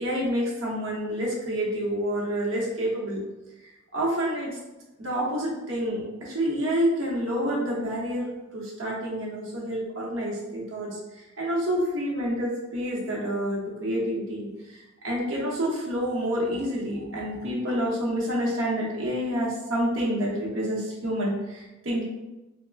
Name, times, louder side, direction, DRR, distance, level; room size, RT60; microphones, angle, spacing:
voice 1, 0.0-3.2 3.9-4.6 5.0-22.0, equal, 90° right, -4 dB, 0.7 m, -28 dB
2.3 x 2.0 x 3.3 m, 1.0 s
head